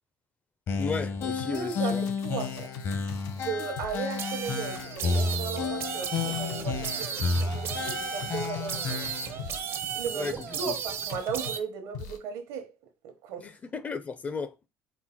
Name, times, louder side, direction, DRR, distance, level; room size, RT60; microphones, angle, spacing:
sound 1, 0.7-9.4, left 4 dB, 55° left, 0.9 m, -31 dB
voice 1, 0.8-2.0 10.1-10.7 13.4-14.5, left 4 dB, 25° left, 0.4 m, -34 dB
sound 2, 1.2-11.6 11.9-12.2, left 6 dB, 80° left, 0.7 m, -42 dB
voice 2, 1.5-2.7 3.4-9.0 10.0-12.7 13.0-13.5, right 6 dB, 85° right, 0.9 m, -36 dB
sound 3, 4.2-11.6, right 8 dB, 50° right, 0.5 m, -35 dB
4.3 x 2.0 x 4.3 m
cardioid pair, 115°, 6 cm